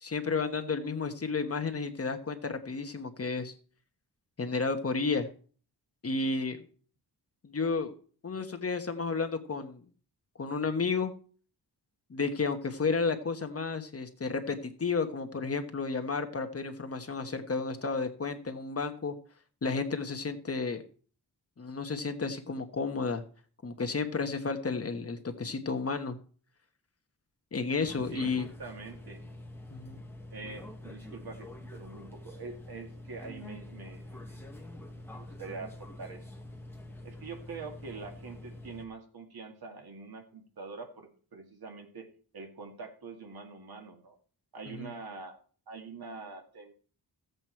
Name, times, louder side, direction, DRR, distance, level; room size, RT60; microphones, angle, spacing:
voice 1, 0.0-3.5 4.4-5.3 6.0-6.6 7.5-7.9 8.2-9.8 10.4-11.1 12.1-19.1 19.6-20.8 21.6-23.2 23.6-26.2 27.5-28.5 29.7-30.0 44.7-44.9, left 4 dB, 35° left, 6 dB, 1.2 m, -32 dB
sound 1, 27.8-38.8, left 1 dB, 5° left, 1.5 m, -46 dB
voice 2, 28.1-29.2 30.3-34.5 34.9-36.2 37.0-42.1 42.3-44.1 44.5-45.4 45.7-46.7, right 4 dB, 65° right, 3 dB, 2.2 m, -45 dB
15.0 x 8.1 x 4.5 m, 0.42 s
wide cardioid pair, 165°, 40 cm